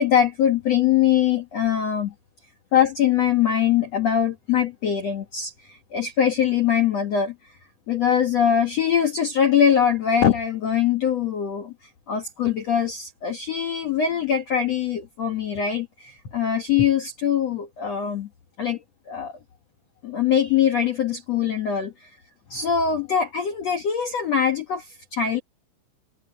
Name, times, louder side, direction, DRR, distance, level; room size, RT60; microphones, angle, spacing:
voice 1, 0.0-2.1 2.7-7.3 7.9-11.7 12.1-18.3 18.6-18.8 19.1-19.3 20.0-22.1 22.5-25.4, left 8 dB, 80° left, 1.5 m, -22 dB
omnidirectional pair, 5.5 m